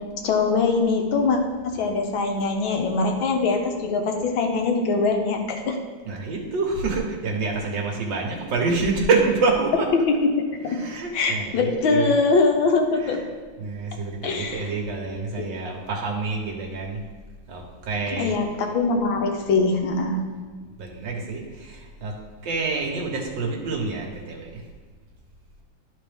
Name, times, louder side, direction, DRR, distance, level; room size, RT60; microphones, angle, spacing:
voice 1, 0.2-1.4 1.6-5.8 9.9-10.8 11.1-13.2 14.2-14.6 15.4-15.5 18.2-20.2, left 4 dB, 80° left, 3 dB, 1.7 m, -22 dB
voice 2, 6.1-9.9 10.6-12.2 13.0-13.3 13.6-17.0 17.5-18.4 20.8-22.1 22.4-24.6, right 3 dB, 70° right, 0 dB, 1.8 m, -27 dB
12.0 x 4.2 x 3.5 m, 1.5 s
omnidirectional pair, 2.1 m